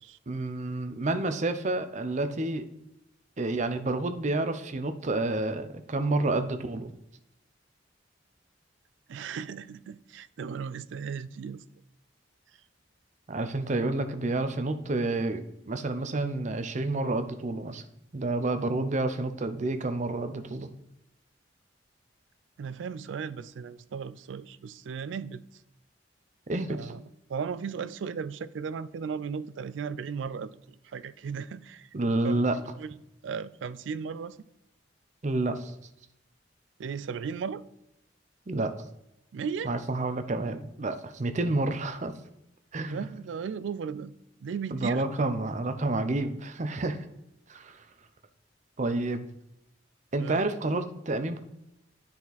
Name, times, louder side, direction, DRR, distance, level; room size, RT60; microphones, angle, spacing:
voice 1, 0.3-2.7 3.4-6.9 13.3-17.8 18.1-20.7 26.5-26.9 31.9-32.6 35.2-35.7 38.5-38.7 39.6-42.1 42.7-43.1 44.7-47.0 47.5-47.9 48.8-49.3 50.1-51.4, right 2 dB, 40° right, 0.6 m, -29 dB
voice 2, 9.1-11.6 22.6-25.4 26.7-27.0 27.3-31.9 32.2-32.9 33.2-34.4 36.8-37.6 39.3-39.7 42.9-44.1 44.4-45.0 50.1-50.4, right 6 dB, 80° right, 0.4 m, -36 dB
9.7 x 4.3 x 4.0 m
head